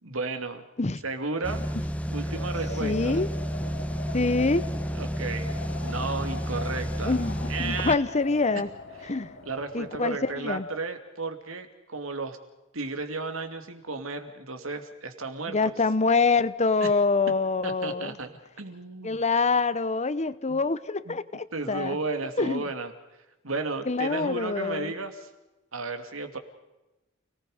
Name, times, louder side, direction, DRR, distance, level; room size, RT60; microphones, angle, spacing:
voice 1, 0.0-0.6 1.0-1.7 2.1-3.2 4.9-7.2 7.5-8.0 9.4-12.4 12.7-15.6 16.8-16.9 17.6-18.3 18.6-19.2 20.5-20.6 21.1-21.2 21.5-22.9 23.4-25.3 25.7-26.4, right 3 dB, 80° right, 7 dB, 2.6 m, -33 dB
sound 1, 1.4-8.0, equal, 5° left, 0.9 m, -31 dB
Wind, 2.2-10.6, left 3 dB, 65° left, 2.6 m, -42 dB
voice 2, 2.8-3.3 4.1-4.6 7.0-8.7 9.0-9.3 9.7-10.7 15.5-18.2 19.0-22.0 22.4-22.6 23.9-24.9, left 3 dB, 35° left, 15 dB, 0.9 m, -25 dB
29.5 x 19.0 x 5.1 m, 1.0 s
head